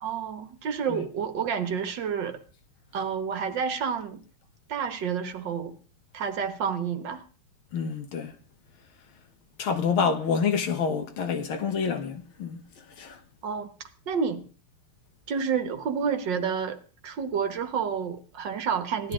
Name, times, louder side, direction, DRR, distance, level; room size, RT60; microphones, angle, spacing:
voice 1, 0.0-2.4 2.9-4.2 4.7-5.7 6.1-7.2 13.4-13.7 14.1-14.5 15.3-16.8 17.0-19.1, right 6 dB, 60° right, 1.8 m, -29 dB
voice 2, 7.7-8.3 9.6-12.6 13.0-13.2, left 6 dB, 75° left, 2.1 m, -27 dB
17.0 x 12.0 x 3.7 m
omnidirectional pair, 2.3 m